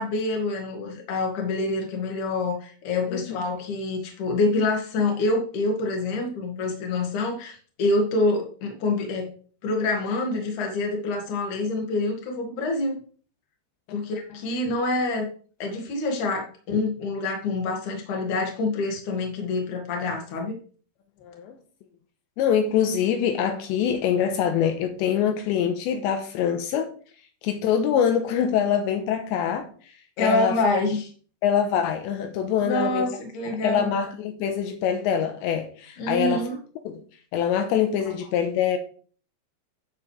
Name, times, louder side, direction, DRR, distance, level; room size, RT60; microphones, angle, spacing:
voice 1, 0.0-9.3 9.6-13.0 13.9-15.3 15.6-20.6 30.2-31.1 32.6-33.9 36.0-36.6, left 2 dB, 50° left, 3.1 m, -26 dB
voice 2, 21.2-21.6 22.4-26.9 27.4-29.6 30.2-30.6 31.4-33.1 33.6-36.4 36.9-37.0 37.3-38.8, left 8 dB, 80° left, 3.2 m, -24 dB
12.5 x 8.5 x 3.4 m
omnidirectional pair, 5.2 m